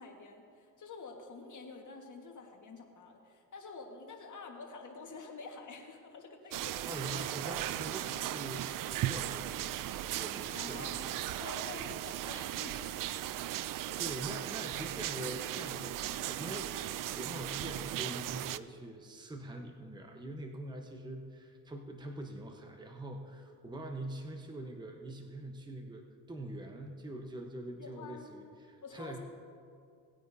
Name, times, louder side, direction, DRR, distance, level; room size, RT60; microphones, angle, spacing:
voice 1, 0.0-7.2 10.5-13.1 13.9-14.0 27.8-28.3 28.8-29.2, left 4 dB, 40° left, 2 dB, 1.7 m, -48 dB
sound 1, 6.5-18.6, right 13 dB, 50° right, 0.5 m, -37 dB
voice 2, 6.9-11.0 11.8-11.9 13.5-29.2, right 1 dB, 10° right, 3 dB, 1.0 m, -44 dB
18.5 x 9.1 x 2.8 m, 2.3 s
supercardioid pair, 80°, 44 cm